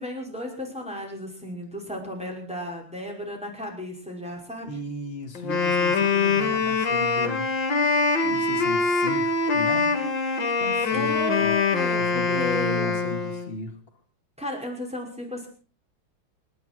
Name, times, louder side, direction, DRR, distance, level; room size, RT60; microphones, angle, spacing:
voice 1, 0.0-4.7 10.9-12.9 14.4-15.5, left 1 dB, 5° right, -1 dB, 5.5 m, -34 dB
voice 2, 4.6-7.5 8.2-10.0 10.4-11.5 12.0-13.8, left 2 dB, 25° left, 2 dB, 2.7 m, -35 dB
Wind instrument woodwind instrument, 5.3-13.5, left 4 dB, 60° left, 3.0 m, -24 dB
28.5 x 11.0 x 4.5 m, 0.39 s
omnidirectional pair, 2.3 m